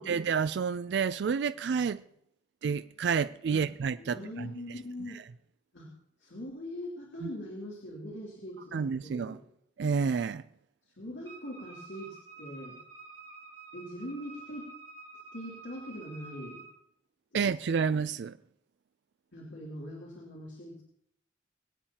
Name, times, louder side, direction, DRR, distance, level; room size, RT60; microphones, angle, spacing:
voice 1, 0.0-2.0 2.6-4.5 7.2-7.3 8.7-9.4 9.8-10.4 17.3-18.4, right 6 dB, 65° right, 0.3 m, -29 dB
voice 2, 4.0-5.2 5.7-9.4 10.8-12.8 13.7-14.7 15.3-16.6 17.3-17.6 19.3-20.8, equal, 80° left, 2.9 m, -42 dB
Wind instrument woodwind instrument, 11.2-16.7, right 3 dB, 30° right, 2.9 m, -49 dB
23.5 x 8.8 x 2.9 m
head